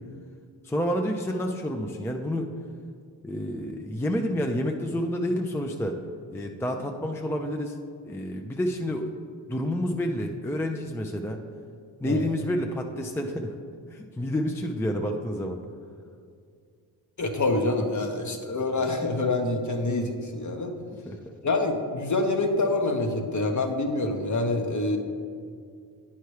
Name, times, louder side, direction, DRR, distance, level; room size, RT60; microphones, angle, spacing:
voice 1, 0.6-2.5 3.2-6.0 6.3-7.8 8.0-9.1 9.5-11.4 12.0-13.5 13.9-15.6 21.0-21.2, equal, 5° left, 3 dB, 0.5 m, -29 dB
voice 2, 17.2-20.7 21.4-25.0, left 2 dB, 35° left, 4 dB, 1.1 m, -26 dB
9.0 x 5.7 x 3.2 m, 2.3 s
supercardioid pair, 45°, 49 cm